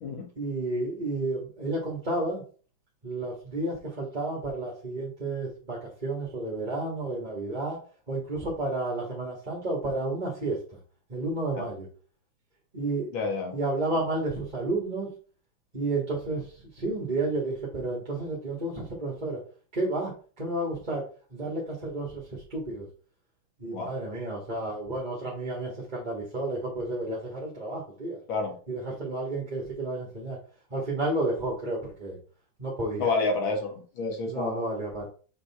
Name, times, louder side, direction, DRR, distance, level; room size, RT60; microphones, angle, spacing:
voice 1, 0.3-2.4 3.0-7.8 8.1-10.6 11.1-11.9 12.7-13.1 13.5-15.1 15.7-19.4 19.7-21.0 21.3-22.9 23.6-28.2 28.7-30.4 30.7-32.2 32.6-33.1 34.3-35.1, right 2 dB, 25° right, -3 dB, 1.6 m, -31 dB
voice 2, 13.1-13.5 23.7-23.9 28.3-28.5 33.0-34.6, left 3 dB, 85° left, 3 dB, 2.4 m, -29 dB
6.6 x 5.2 x 3.5 m, 0.40 s
omnidirectional pair, 2.1 m